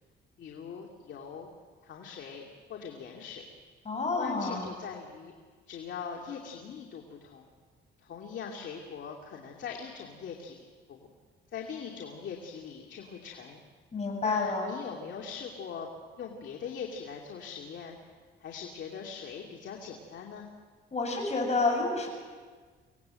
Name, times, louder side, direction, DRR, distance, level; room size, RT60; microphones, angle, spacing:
voice 1, 0.4-1.5 1.8-2.4 2.7-3.4 4.2-5.3 5.7-7.5 8.0-11.1 11.5-13.6 14.2-15.9 16.2-18.0 18.4-20.5, left 6 dB, 65° left, 0 dB, 2.8 m, -41 dB
voice 2, 3.8-4.7 13.9-14.7 20.9-22.1, left 3 dB, 35° left, 2 dB, 7.7 m, -29 dB
26.0 x 18.5 x 7.8 m, 1.5 s
cardioid pair, 90°, 20 cm